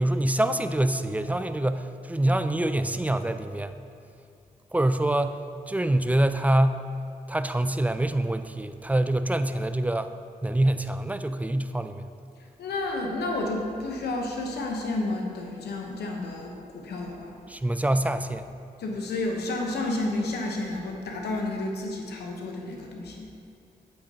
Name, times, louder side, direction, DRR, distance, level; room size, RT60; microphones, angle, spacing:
voice 1, 0.0-3.8 4.7-5.4 5.7-6.8 7.3-10.1 10.4-12.0 17.5-18.5, right 1 dB, 10° right, 10 dB, 0.4 m, -25 dB
voice 2, 12.6-17.3 18.8-23.3, left 2 dB, 90° left, 1 dB, 0.9 m, -31 dB
8.6 x 7.8 x 2.8 m, 2.5 s
cardioid pair, 50°, 17 cm